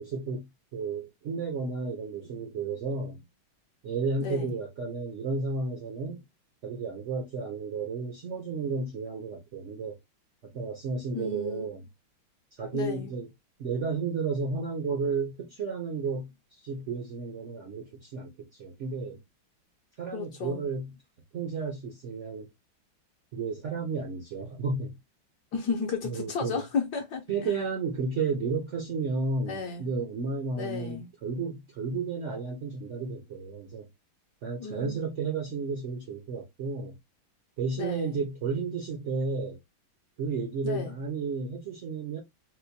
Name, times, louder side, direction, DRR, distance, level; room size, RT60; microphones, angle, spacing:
voice 1, 0.0-3.2 3.8-6.2 6.6-10.0 10.4-11.9 12.5-13.3 13.6-19.2 20.0-20.9 21.3-22.5 23.3-25.0 26.0-26.6 27.3-33.9 34.4-37.0 37.6-39.6 40.2-42.2, right 4 dB, 90° right, 0.6 m, -32 dB
voice 2, 4.2-4.5 11.1-11.7 12.7-13.1 20.1-20.6 25.5-27.2 29.4-29.9 30.5-31.1 34.6-35.0 37.8-38.2 40.6-41.0, left 5 dB, 70° left, 1.0 m, -33 dB
4.2 x 2.1 x 2.6 m
omnidirectional pair, 2.2 m